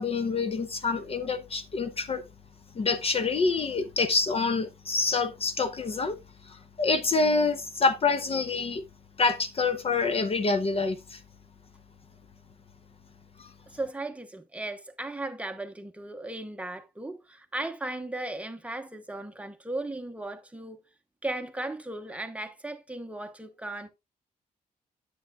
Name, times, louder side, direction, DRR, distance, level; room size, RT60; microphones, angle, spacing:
voice 1, 0.0-2.2 2.8-6.2 6.5-8.8 9.2-11.2 13.4-13.5, left 4 dB, 40° left, 0.7 m, -27 dB
voice 2, 13.7-20.8 21.2-23.9, right 2 dB, 10° right, 1.0 m, -36 dB
9.3 x 8.5 x 2.3 m
cardioid pair, 125°, 15 cm